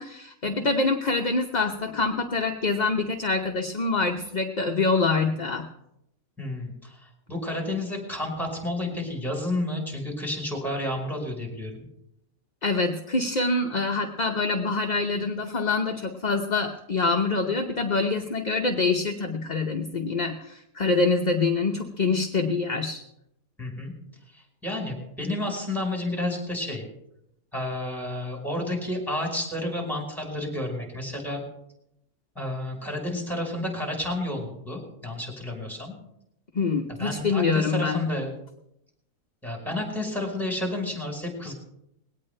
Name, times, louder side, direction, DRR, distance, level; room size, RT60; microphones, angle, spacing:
voice 1, 0.0-5.7 12.6-23.0 36.5-38.1, left 3 dB, 35° left, 3 dB, 0.7 m, -25 dB
voice 2, 6.4-11.8 23.6-23.9 24.3-26.8 27.5-31.4 32.3-35.9 37.0-38.3 39.4-41.5, left 1 dB, ahead, 0 dB, 4.5 m, -31 dB
20.0 x 17.5 x 3.3 m, 0.80 s
omnidirectional pair, 1.6 m